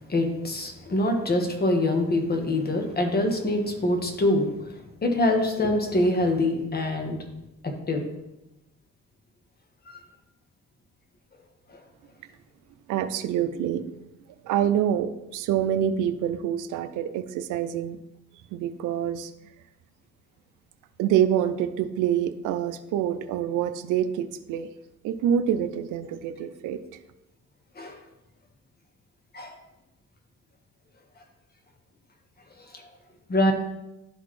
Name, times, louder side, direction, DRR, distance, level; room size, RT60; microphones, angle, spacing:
voice 1, 0.1-4.5 5.0-7.2 7.6-8.0 27.8-28.0 29.3-29.5 33.3-33.5, left 1 dB, 30° left, 3 dB, 1.4 m, -24 dB
voice 2, 12.9-13.9 14.4-18.0 18.5-19.3 21.0-24.7 25.0-26.8, right 9 dB, 85° right, 11 dB, 0.6 m, -26 dB
11.0 x 4.0 x 3.2 m, 0.95 s
cardioid pair, 90°, 30 cm